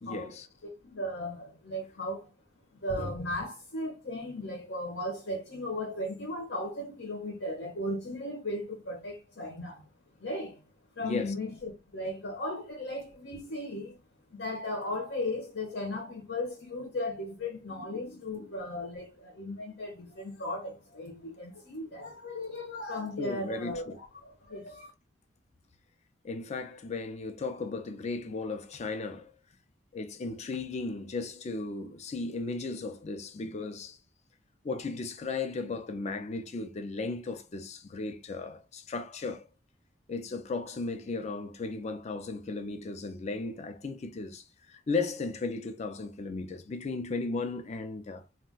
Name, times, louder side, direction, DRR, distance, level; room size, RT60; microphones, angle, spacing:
voice 1, 0.0-0.5 11.0-11.3 17.9-18.2 23.2-24.0 26.2-29.3 29.9-34.0 34.6-39.5 40.1-48.2, left 3 dB, 35° left, 0.4 m, -36 dB
voice 2, 0.6-2.3 2.7-9.8 10.2-10.6 10.9-14.0 14.3-24.9, left 1 dB, 75° left, 0.9 m, -36 dB
2.3 x 2.1 x 3.8 m
head